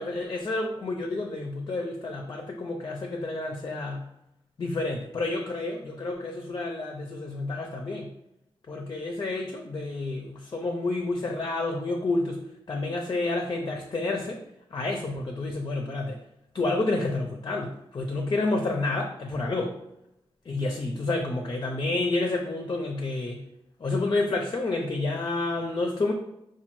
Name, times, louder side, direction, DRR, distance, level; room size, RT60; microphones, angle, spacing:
voice 1, 0.0-4.0 4.6-8.1 8.7-12.4 12.7-14.4 14.7-16.2 16.5-19.7 20.5-23.4 23.8-26.1, left 2 dB, 40° left, 2 dB, 0.5 m, -29 dB
4.2 x 2.2 x 3.0 m, 0.85 s
cardioid pair, 85°, 10 cm